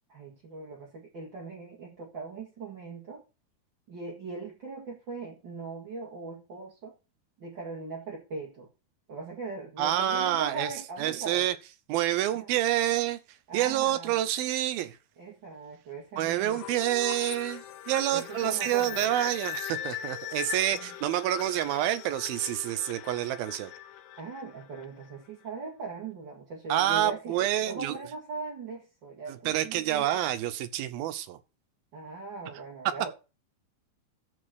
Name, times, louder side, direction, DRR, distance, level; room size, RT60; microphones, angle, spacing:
voice 1, 0.1-3.2 3.9-6.9 7.4-8.7 9.1-11.5 12.3-12.5 13.5-14.1 15.2-16.7 18.1-19.1 20.7-20.9 24.2-30.1 31.9-33.1, right 4 dB, 40° right, 2.0 m, -40 dB
voice 2, 9.8-10.7 11.0-11.6 11.9-13.2 13.5-15.0 16.2-23.7 26.7-28.0 29.3-31.4, right 12 dB, 75° right, 2.5 m, -28 dB
sound 1, 16.5-25.1, left 12 dB, 80° left, 1.8 m, -40 dB
13.5 x 4.7 x 6.3 m
omnidirectional pair, 4.6 m